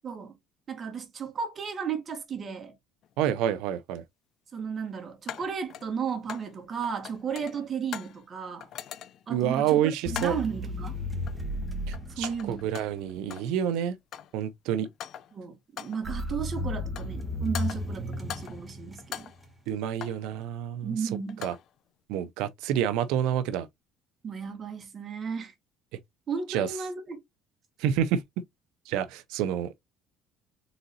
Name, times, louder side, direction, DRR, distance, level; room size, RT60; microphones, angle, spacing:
voice 1, 0.0-0.3 0.7-2.7 4.5-8.7 9.3-9.8 10.1-11.0 12.2-12.7 15.3-19.3 20.8-21.4 24.2-25.5 26.3-27.2, right 6 dB, 30° right, 1.5 m, -34 dB
sound 1, 3.0-3.1 5.3-6.6 6.8-8.2 8.6-9.3 10.1-10.5 11.3-11.6 11.9-13.6 13.9-14.4 14.8-15.4 15.8-16.1 16.7-17.2 17.5-18.7 19.0-20.3 21.1-21.7, left 10 dB, 50° left, 0.4 m, -42 dB
voice 2, 3.2-4.0 9.3-10.4 11.9-13.9 14.3-14.9 19.7-21.1 21.4-21.5 22.1-23.7 26.5-26.7 27.8-28.2 28.9-29.8, right 10 dB, 75° right, 0.5 m, -28 dB
sound 2, 10.0-13.0 16.0-19.5, left 1 dB, 5° right, 1.3 m, -34 dB
4.0 x 3.9 x 2.6 m
cardioid pair, 135°, 0 cm